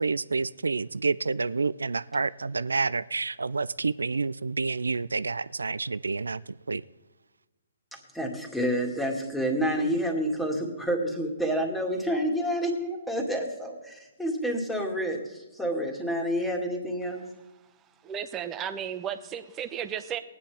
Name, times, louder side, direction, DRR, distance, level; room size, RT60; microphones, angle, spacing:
voice 1, 0.0-6.8, right 4 dB, 90° right, 19 dB, 0.3 m, -29 dB
voice 2, 7.9-17.2, equal, 5° left, 1 dB, 2.1 m, -29 dB
voice 3, 18.0-20.2, right 9 dB, 20° right, 8 dB, 0.8 m, -34 dB
19.0 x 9.6 x 3.5 m, 1.1 s
hypercardioid pair, 140°, 0 cm